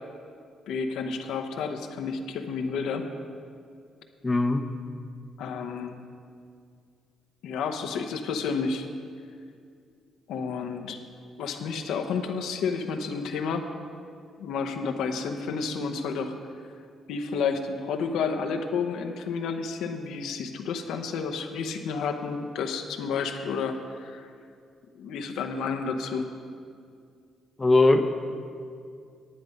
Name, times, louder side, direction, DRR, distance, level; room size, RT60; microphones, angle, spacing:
voice 1, 0.7-3.1 5.4-6.0 7.4-8.9 10.3-11.0 11.4-13.7 14.4-16.3 17.1-24.3 24.9-26.3, left 5 dB, 85° left, 5 dB, 0.8 m, -31 dB
voice 2, 4.2-4.7 27.6-28.0, left 2 dB, 20° left, 6 dB, 0.7 m, -20 dB
10.0 x 9.6 x 5.2 m, 2.3 s
cardioid pair, 90°, 0 cm